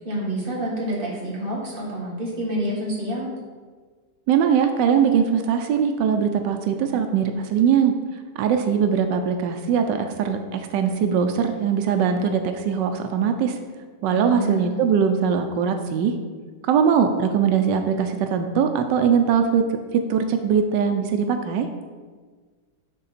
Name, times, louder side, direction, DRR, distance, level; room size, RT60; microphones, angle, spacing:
voice 1, 0.0-3.3 14.1-14.7, right 1 dB, 30° right, -4 dB, 1.7 m, -28 dB
voice 2, 4.3-7.9 8.4-13.6 14.0-16.1 16.6-21.7, right 7 dB, 90° right, 6 dB, 1.2 m, -21 dB
9.6 x 3.7 x 4.2 m, 1.5 s
omnidirectional pair, 1.9 m